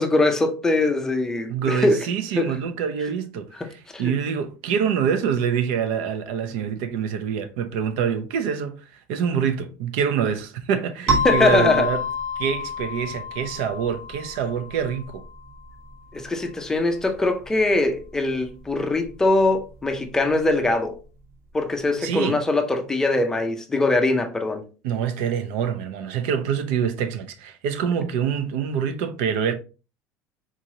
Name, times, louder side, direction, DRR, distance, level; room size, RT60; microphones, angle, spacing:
voice 1, 0.0-2.1 2.4-2.6 3.6-3.7 3.9-4.1 11.2-11.9 16.1-21.0 21.5-24.6, left 2 dB, 10° left, 0.4 m, -22 dB
voice 2, 1.5-12.0 12.4-15.2 22.0-22.4 24.8-29.5, right 7 dB, 80° right, 0.6 m, -25 dB
sound 1, 11.1-15.5, left 2 dB, 45° right, 1.3 m, -28 dB
3.8 x 3.0 x 2.6 m
cardioid pair, 170°, 6 cm